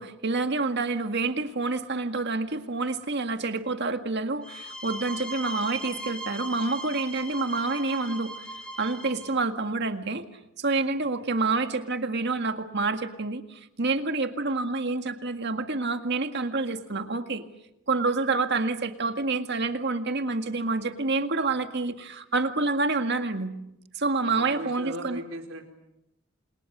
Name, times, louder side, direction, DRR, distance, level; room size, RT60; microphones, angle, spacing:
voice 1, 0.0-8.5 8.8-10.3 10.6-17.4 17.9-23.5 24.0-25.2, right 3 dB, 55° right, 7 dB, 1.9 m, -28 dB
sound 1, 4.4-9.3, right 1 dB, 5° left, 4.6 m, -38 dB
voice 2, 24.3-25.6, right 1 dB, 90° right, 4 dB, 4.4 m, -38 dB
29.5 x 27.5 x 6.8 m, 0.86 s
head